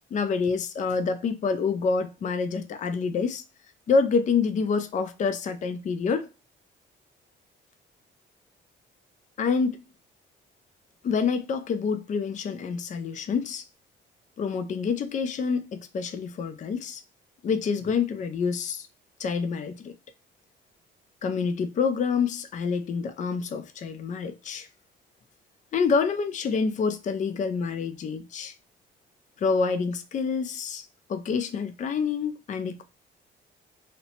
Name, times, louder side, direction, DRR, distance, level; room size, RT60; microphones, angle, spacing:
voice 1, 0.1-3.4 3.9-6.3 9.4-9.8 11.0-13.6 14.4-17.0 17.4-18.9 19.2-19.9 21.2-24.7 25.7-28.5 29.4-32.8, left 5 dB, 40° left, 0.4 m, -27 dB
2.8 x 2.0 x 2.8 m
cardioid pair, 90°, 20 cm